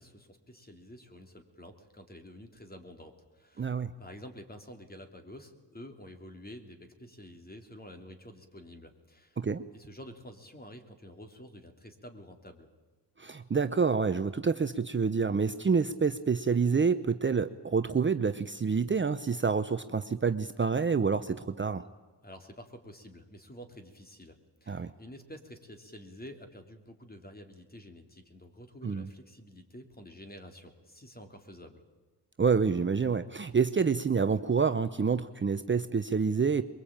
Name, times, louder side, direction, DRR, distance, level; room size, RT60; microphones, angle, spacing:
voice 1, 0.0-9.4 9.7-12.7 22.2-31.8, equal, 20° left, 6 dB, 3.2 m, -49 dB
voice 2, 3.6-3.9 9.4-9.7 13.2-21.9 24.7-24.9 28.8-29.1 32.4-36.6, right 5 dB, 25° right, 10 dB, 0.8 m, -28 dB
23.0 x 22.5 x 8.8 m, 1.3 s
cardioid pair, 90°, 43 cm